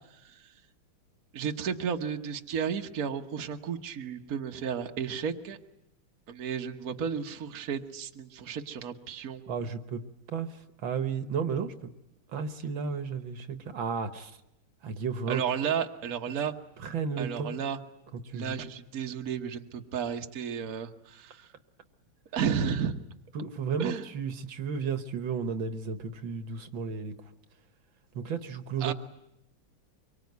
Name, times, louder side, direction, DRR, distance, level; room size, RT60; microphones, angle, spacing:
voice 1, 1.3-5.6 6.3-9.4 15.3-16.5 17.2-17.8 18.3-21.5 22.3-22.9 23.8-24.0 28.8-28.9, right 7 dB, 45° right, 4 dB, 1.4 m, -33 dB
voice 2, 9.5-10.0 10.3-11.9 12.3-14.4 14.8-15.4 16.8-17.6 18.1-18.5 23.3-27.1 28.1-28.9, right 6 dB, 65° right, 9 dB, 1.9 m, -33 dB
24.5 x 24.0 x 9.4 m, 0.85 s
omnidirectional pair, 2.4 m